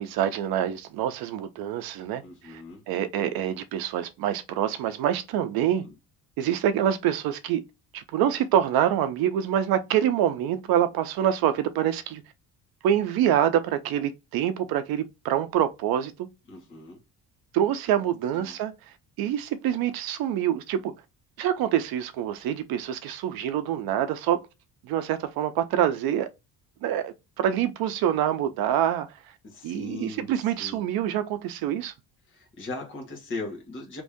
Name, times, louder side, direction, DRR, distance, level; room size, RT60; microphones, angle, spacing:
voice 1, 0.0-5.8 6.4-7.6 7.9-12.2 12.8-16.3 17.5-18.7 19.2-20.9 21.4-24.4 24.8-26.3 26.8-29.1 29.6-31.9, right 10 dB, 80° right, 0.6 m, -26 dB
voice 2, 2.2-2.8 5.8-5.9 16.5-17.0 18.4-18.5 29.4-30.3 30.6-30.9 32.3-34.0, left 3 dB, 35° left, 1.2 m, -38 dB
3.0 x 2.6 x 3.5 m
cardioid pair, 175°, 36 cm